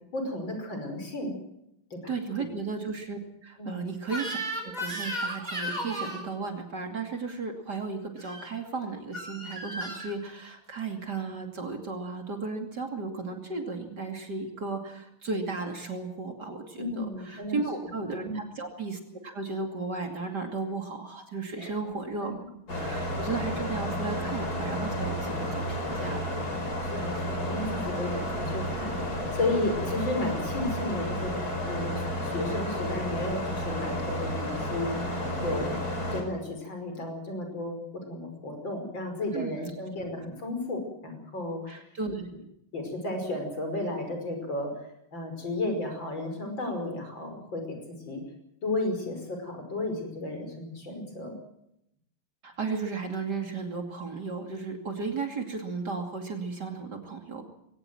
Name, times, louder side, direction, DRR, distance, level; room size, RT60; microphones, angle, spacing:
voice 1, 0.1-1.3 1.9-2.1 3.6-3.9 16.8-17.6 18.2-18.4 21.6-22.0 22.2-22.3 23.0-23.1 26.9-31.3 31.6-35.8 36.1-41.8 42.7-47.8 48.0-48.2 48.6-51.3, left 2 dB, 60° left, 4 dB, 6.2 m, -33 dB
voice 2, 2.1-4.4 4.6-22.4 22.8-26.4 39.3-39.5 41.7-42.3 52.4-57.5, right 4 dB, 50° right, 3 dB, 3.2 m, -35 dB
Crying sobbing / Screech, 4.1-6.3 8.2-8.5 9.1-10.1, right 1 dB, 20° right, 4.9 m, -34 dB
sound 1, 22.7-36.2, equal, 45° left, 5.3 m, -31 dB
22.0 x 18.5 x 7.8 m, 0.79 s
omnidirectional pair, 2.3 m